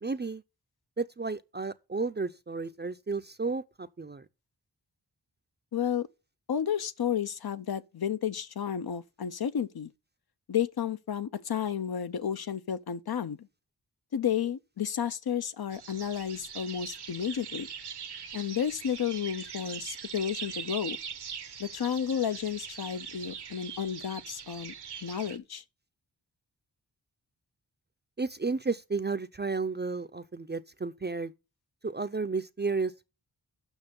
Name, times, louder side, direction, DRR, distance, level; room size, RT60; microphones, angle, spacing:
voice 1, 0.0-0.4 1.0-4.3 28.2-31.3 31.8-33.0, right 4 dB, 25° right, 0.5 m, -32 dB
voice 2, 5.7-6.1 6.5-9.9 10.5-13.5 14.1-17.7 18.3-21.0 21.6-24.7 25.0-25.6, left 8 dB, 70° left, 0.7 m, -32 dB
sound 1, 15.7-25.4, right 7 dB, 80° right, 1.0 m, -42 dB
8.9 x 6.1 x 5.3 m
wide cardioid pair, 85°, 39 cm